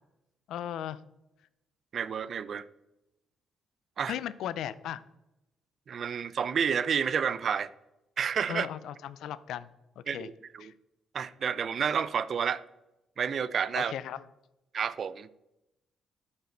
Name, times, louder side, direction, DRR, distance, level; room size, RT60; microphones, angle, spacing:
voice 1, 0.5-1.0 4.1-5.0 8.5-9.7 10.1-10.3 10.6-10.7 13.8-14.2, left 10 dB, 80° left, 0.4 m, -36 dB
voice 2, 1.9-2.6 4.0-4.2 5.9-7.7 8.2-8.7 10.1-10.7 11.1-12.6 13.2-13.9 14.7-15.3, right 7 dB, 55° right, 0.4 m, -30 dB
12.0 x 5.6 x 3.9 m
cardioid pair, 90°, 0 cm